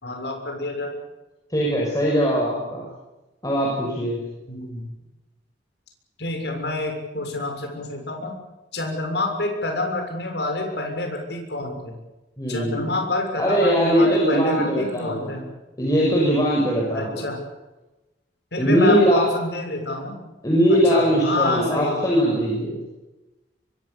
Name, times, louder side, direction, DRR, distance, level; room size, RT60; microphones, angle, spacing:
voice 1, 0.0-0.9 4.5-4.9 6.2-8.4 8.7-11.9 12.5-15.5 16.9-17.4 18.5-20.2 20.9-22.0, left 2 dB, 70° left, 3 dB, 6.8 m, -27 dB
voice 2, 1.5-2.8 3.4-4.2 12.4-12.9 13.4-15.3 15.8-17.3 18.6-19.3 20.4-22.8, equal, 20° left, -3 dB, 6.4 m, -20 dB
24.5 x 24.5 x 7.1 m, 1.1 s
head